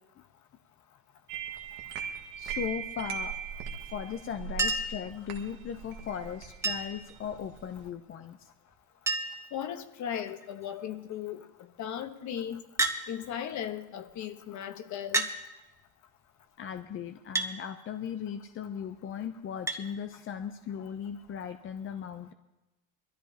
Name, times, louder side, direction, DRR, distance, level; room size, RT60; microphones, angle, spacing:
sound 1, 1.3-7.9, right 7 dB, 80° right, 1.7 m, -40 dB
voice 1, 2.4-3.3 3.8-8.5 16.6-22.3, left 8 dB, 35° left, 0.7 m, -38 dB
Chink clink, 4.6-5.0 6.6-7.1 8.4-8.5 8.7-8.8 9.1-9.5 10.3-10.6 12.8-13.0 14.1-14.2 15.1-15.4 17.4-17.5 19.7-19.8 21.3-21.4, right 2 dB, 10° right, 1.3 m, -30 dB
voice 2, 9.5-11.5 11.8-12.6 13.1-15.3, left 9 dB, 50° left, 1.2 m, -37 dB
22.0 x 13.5 x 2.9 m
cardioid pair, 115°, 36 cm